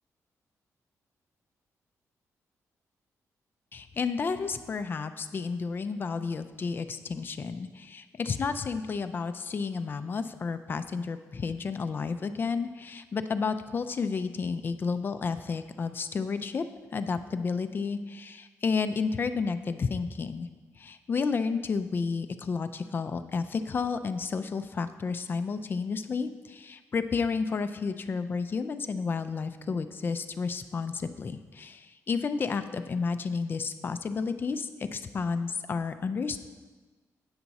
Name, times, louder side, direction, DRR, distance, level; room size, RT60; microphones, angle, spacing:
voice 1, 3.7-16.6 16.9-20.5 20.8-36.4, left 5 dB, 35° left, 10 dB, 0.4 m, -31 dB
8.7 x 5.9 x 4.1 m, 1.3 s
wide cardioid pair, 130°, 6 cm